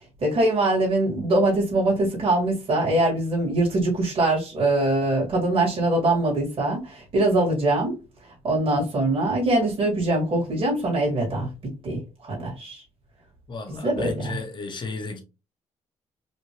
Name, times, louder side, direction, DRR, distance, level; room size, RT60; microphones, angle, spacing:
voice 1, 0.2-8.0 8.4-11.5 11.8-12.8 13.7-14.3, right 2 dB, 50° right, 2.2 m, -23 dB
voice 2, 13.5-15.2, left 3 dB, 40° left, 1.2 m, -33 dB
4.2 x 2.7 x 3.1 m
cardioid pair, 100°, 12 cm